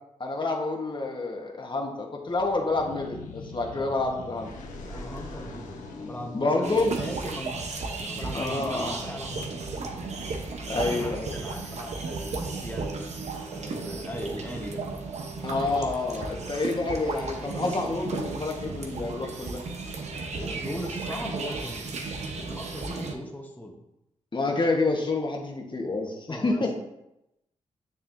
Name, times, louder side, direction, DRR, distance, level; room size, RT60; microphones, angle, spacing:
voice 1, 0.2-4.5 6.3-6.9 8.3-8.9 10.7-11.3 15.4-19.6 24.3-26.8, left 3 dB, 40° left, 1 dB, 1.2 m, -28 dB
sound 1, 2.3-11.8, left 3 dB, 85° left, 0.8 m, -44 dB
voice 2, 4.9-9.5 10.7-14.8 20.3-21.9 22.4-23.7 26.3-26.8, equal, 10° left, 0 dB, 1.1 m, -38 dB
sound 2, 6.6-23.1, right 3 dB, 60° right, 0.9 m, -34 dB
6.8 x 5.8 x 2.6 m, 0.87 s
supercardioid pair, 50°, 13 cm